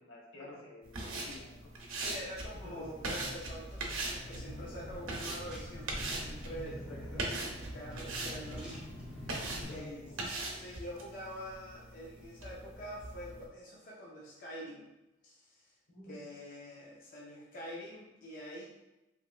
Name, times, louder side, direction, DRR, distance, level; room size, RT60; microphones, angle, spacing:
voice 1, 0.1-1.7 2.6-2.9 6.6-7.3 9.6-10.2 15.9-16.1, left 2 dB, 80° left, -4 dB, 1.0 m, -49 dB
sound 1, 0.8-13.5, right 2 dB, 85° right, 0.6 m, -41 dB
voice 2, 1.9-8.9 9.7-9.9 10.4-14.9 15.2-15.7 16.1-18.6, equal, 45° left, -4 dB, 0.4 m, -46 dB
Car / Engine, 2.4-9.6, equal, 5° right, 0.9 m, -46 dB
3.1 x 3.0 x 2.3 m, 0.98 s
head